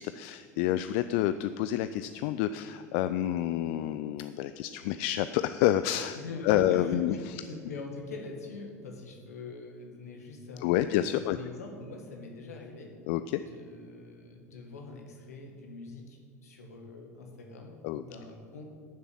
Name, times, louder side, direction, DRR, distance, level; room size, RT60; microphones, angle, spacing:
voice 1, 0.0-6.2 6.4-7.4 10.6-11.4 13.1-13.4 17.8-18.0, left 12 dB, 55° left, 12 dB, 0.4 m, -28 dB
voice 2, 6.2-12.9 13.5-18.7, left 3 dB, 70° left, 2 dB, 1.8 m, -43 dB
11.0 x 6.9 x 7.3 m, 2.3 s
figure-of-eight pair, 75°, 9 cm